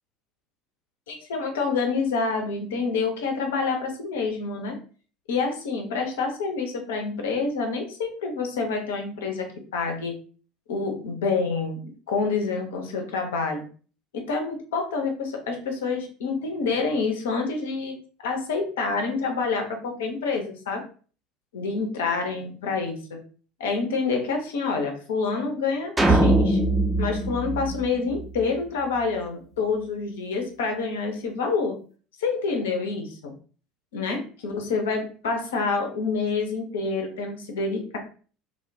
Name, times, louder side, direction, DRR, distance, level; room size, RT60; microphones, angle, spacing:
voice 1, 1.1-4.8 5.3-10.1 10.7-13.6 14.1-17.9 18.2-20.8 21.5-23.2 23.6-26.6 27.0-31.8 32.2-33.3 33.9-38.0, left 4 dB, 65° left, 3 dB, 0.5 m, -27 dB
sound 1, 26.0-28.4, right 2 dB, 10° right, 0.5 m, -21 dB
2.7 x 2.1 x 2.5 m, 0.40 s
figure-of-eight pair, 65°, 0 cm